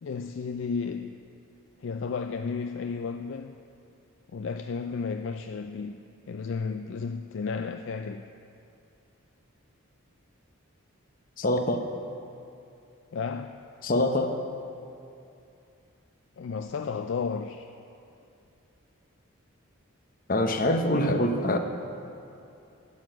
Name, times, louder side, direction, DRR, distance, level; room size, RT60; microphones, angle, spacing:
voice 1, 0.0-1.2 1.8-3.5 4.3-6.0 6.3-8.3 13.1-13.6 16.4-17.7, left 5 dB, 55° left, 7 dB, 0.3 m, -33 dB
voice 2, 11.4-11.8 13.8-14.3 20.3-21.6, left 1 dB, 40° left, 6 dB, 0.8 m, -24 dB
9.8 x 9.4 x 7.6 m, 2.6 s
head